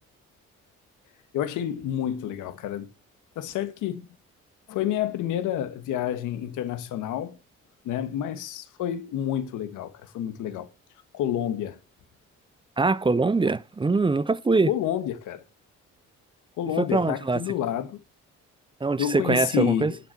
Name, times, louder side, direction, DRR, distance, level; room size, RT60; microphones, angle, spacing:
voice 1, 1.3-2.9 3.3-4.1 4.7-7.4 7.8-10.7 11.1-11.8 14.7-15.4 16.6-18.0 19.0-20.0, left 10 dB, 90° left, 1.4 m, -29 dB
voice 2, 12.8-14.7 16.8-17.4 18.8-19.9, right 3 dB, 15° right, 0.5 m, -23 dB
12.0 x 6.0 x 5.6 m
cardioid pair, 90°, 30 cm